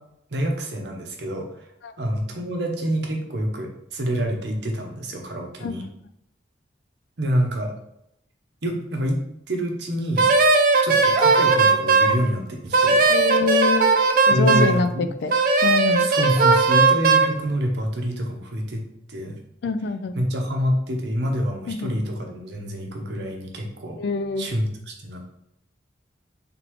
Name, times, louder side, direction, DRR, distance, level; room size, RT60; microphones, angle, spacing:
voice 1, 0.3-1.7 2.0-5.8 7.2-7.7 8.6-9.2 9.5-10.3 10.8-13.0 14.3-15.1 16.0-19.4 20.1-24.0 24.4-25.2, equal, 65° right, 2 dB, 0.8 m, -27 dB
Wind instrument woodwind instrument, 10.2-12.2 12.7-14.8 15.3-17.3, right 4 dB, 45° right, 0.4 m, -17 dB
voice 2, 13.1-13.9 14.3-15.3 15.6-16.1 19.6-20.2 21.7-21.9 24.0-24.5, left 4 dB, 60° left, 11 dB, 0.3 m, -25 dB
3.9 x 3.6 x 3.0 m, 0.78 s
head